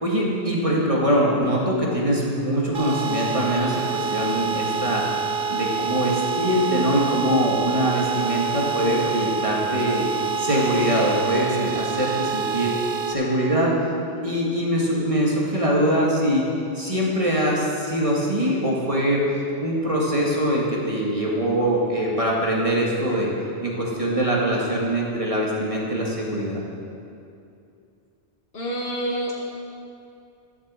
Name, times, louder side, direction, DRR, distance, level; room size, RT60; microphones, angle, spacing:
voice 1, 0.0-5.1 5.5-10.1 10.4-12.7 13.1-13.7 14.2-16.5 16.7-19.2 19.6-23.3 23.6-26.6, equal, 30° right, -4 dB, 1.9 m, -23 dB
sound 1, 2.7-13.1, right 5 dB, 55° right, 1.1 m, -27 dB
voice 2, 28.5-29.3, right 1 dB, 55° left, -4 dB, 2.3 m, -27 dB
12.0 x 7.4 x 7.5 m, 2.6 s
omnidirectional pair, 1.2 m